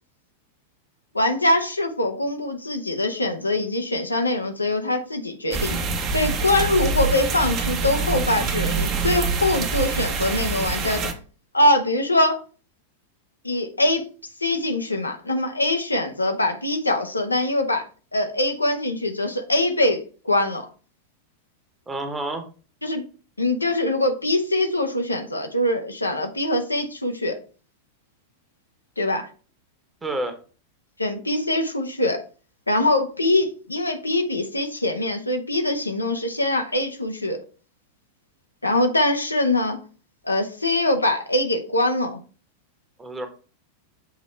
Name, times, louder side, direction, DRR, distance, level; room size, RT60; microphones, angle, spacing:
voice 1, 1.1-5.8 6.1-11.1 11.5-12.4 13.4-14.0 14.4-17.8 18.1-20.6 22.8-23.0 23.4-27.3 29.0-29.3 31.0-32.2 32.7-37.4 38.6-39.8 40.2-42.2, left 1 dB, 80° left, 0.9 m, -23 dB
sound 1, 5.5-11.1, right 4 dB, 35° right, 1.1 m, -25 dB
voice 2, 21.9-22.4 30.0-30.4 43.0-43.3, right 2 dB, 15° right, 1.2 m, -29 dB
7.2 x 3.0 x 4.4 m
figure-of-eight pair, 90°, 0 cm